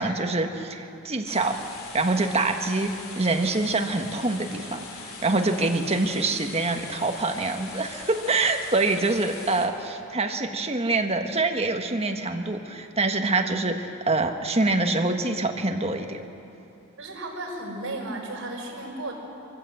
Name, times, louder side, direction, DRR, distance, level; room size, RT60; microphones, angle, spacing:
voice 1, 0.0-1.6 1.9-16.2, right 3 dB, 30° right, 4 dB, 1.4 m, -25 dB
sound 1, 1.3-9.7, left 4 dB, 80° left, 3.1 m, -41 dB
voice 2, 17.0-19.1, right 2 dB, 65° right, -1 dB, 5.6 m, -34 dB
24.5 x 15.0 x 7.9 m, 2.8 s
head